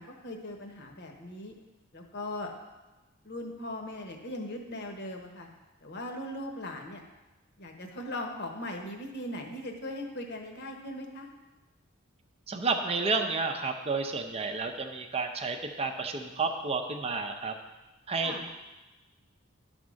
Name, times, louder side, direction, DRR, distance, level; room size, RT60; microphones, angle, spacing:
voice 1, 0.0-1.5 1.9-2.5 3.2-5.5 5.8-7.0 7.6-11.3 18.2-18.4, left 1 dB, 50° left, 3 dB, 1.1 m, -39 dB
voice 2, 12.5-17.5 18.1-18.5, right 4 dB, 30° right, 4 dB, 0.6 m, -31 dB
10.5 x 3.6 x 6.3 m, 1.1 s
head